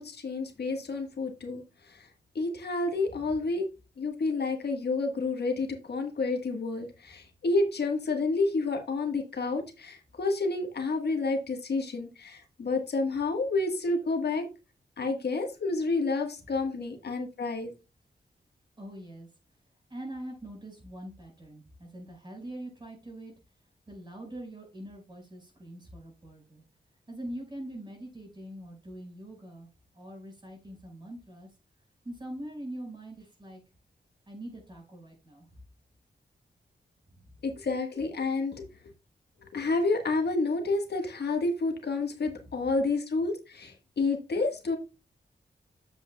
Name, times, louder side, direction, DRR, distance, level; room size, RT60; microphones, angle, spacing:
voice 1, 0.0-1.6 1.9-2.1 2.3-3.7 4.0-14.5 15.0-17.7 37.4-38.7 39.5-44.8, left 3 dB, 65° left, 3 dB, 1.5 m, -29 dB
voice 2, 3.1-3.4 18.8-19.3 19.9-23.3 23.9-26.6 27.1-31.6 32.0-33.6 34.3-35.6 37.1-37.3 42.2-42.7, right 1 dB, 25° right, 0 dB, 5.1 m, -43 dB
9.2 x 7.7 x 2.3 m, 0.29 s
wide cardioid pair, 145°, 18 cm